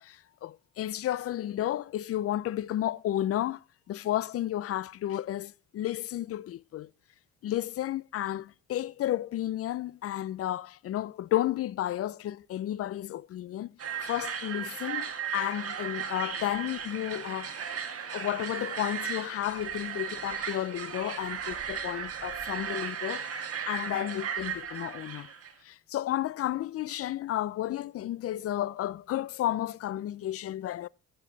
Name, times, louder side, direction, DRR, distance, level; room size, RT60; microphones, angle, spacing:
voice 1, 0.0-6.9 7.4-13.7 14.1-17.7 18.1-25.3 25.6-30.9, left 13 dB, 50° left, 0.4 m, -32 dB
sound 1, 13.8-25.5, right 7 dB, 50° right, 1.8 m, -36 dB
12.0 x 8.0 x 3.9 m
cardioid pair, 90°, 30 cm